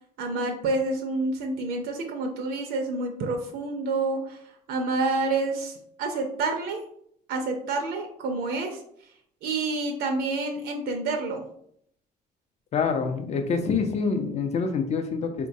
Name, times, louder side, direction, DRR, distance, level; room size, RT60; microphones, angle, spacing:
voice 1, 0.2-4.4 4.7-6.8 7.3-8.8 9.4-11.4, right 3 dB, 80° right, 3 dB, 0.5 m, -28 dB
voice 2, 12.7-15.5, left 5 dB, 40° left, 6 dB, 0.5 m, -26 dB
3.8 x 2.1 x 2.6 m, 0.69 s
cardioid pair, 110°, 17 cm